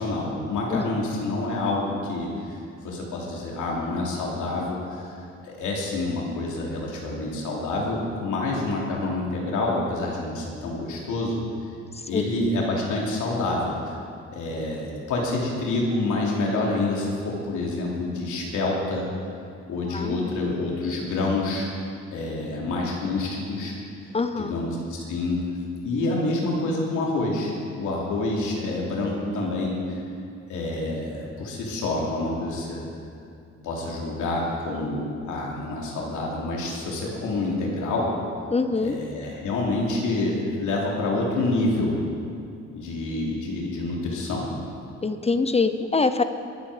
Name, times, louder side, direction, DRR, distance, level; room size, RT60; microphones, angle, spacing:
voice 1, 0.0-2.6 2.8-5.1 5.4-11.4 12.1-13.9 14.3-19.0 19.7-21.7 22.1-23.7 24.4-25.4 25.8-30.0 30.5-32.8 33.6-38.1 38.8-42.0 42.7-44.5, left 2 dB, 80° left, -3 dB, 3.0 m, -27 dB
voice 2, 19.9-20.3 24.1-24.5 38.5-39.0 45.0-46.2, left 4 dB, 20° left, 10 dB, 0.6 m, -24 dB
21.5 x 7.7 x 5.0 m, 2.5 s
cardioid pair, 90°, 30 cm